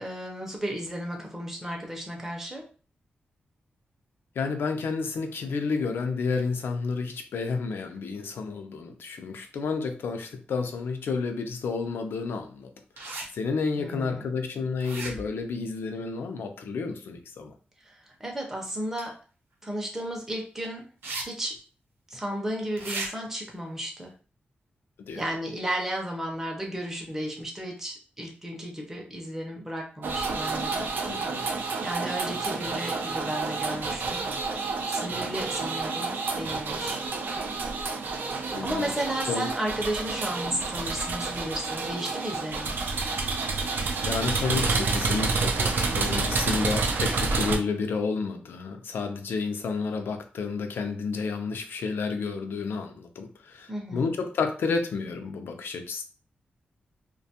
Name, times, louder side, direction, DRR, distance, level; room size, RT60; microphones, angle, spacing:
voice 1, 0.0-2.7 13.8-14.3 17.8-19.2 19.6-20.9 21.2-21.6 22.1-24.1 25.1-30.9 31.8-34.3 34.9-37.0 38.6-42.8 53.7-54.1, right 1 dB, 10° right, 0 dB, 0.5 m, -33 dB
voice 2, 4.4-12.7 13.3-17.5 25.1-25.2 31.0-31.5 38.5-38.8 39.3-39.5 44.0-56.0, left 4 dB, 85° left, 5 dB, 0.4 m, -31 dB
sound 1, 13.0-13.3 14.8-15.4 19.0-19.1 21.0-21.2 21.6-21.7 22.8-23.1, right 2 dB, 85° right, 0.7 m, -34 dB
sound 2, 30.0-47.6, right 4 dB, 65° right, 0.4 m, -29 dB
2.5 x 2.2 x 2.7 m, 0.37 s
wide cardioid pair, 160°, 4 cm